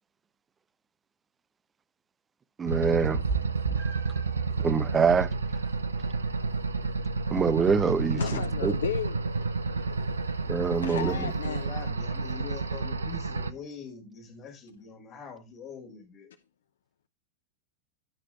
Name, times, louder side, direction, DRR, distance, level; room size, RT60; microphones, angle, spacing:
voice 1, 2.6-3.2 4.6-5.3 7.3-8.7 10.5-11.3, right 5 dB, 20° right, 0.7 m, -25 dB
sound 1, 2.7-13.5, right 4 dB, 75° right, 0.8 m, -30 dB
Meow, 3.1-12.7, right 5 dB, 50° right, 3.0 m, -43 dB
voice 2, 8.2-9.5 9.8-10.0 10.8-11.7, left 8 dB, 65° left, 0.8 m, -34 dB
voice 3, 10.3-16.3, left 6 dB, 35° left, 4.0 m, -44 dB
15.5 x 6.0 x 3.0 m
figure-of-eight pair, 90°, 0 cm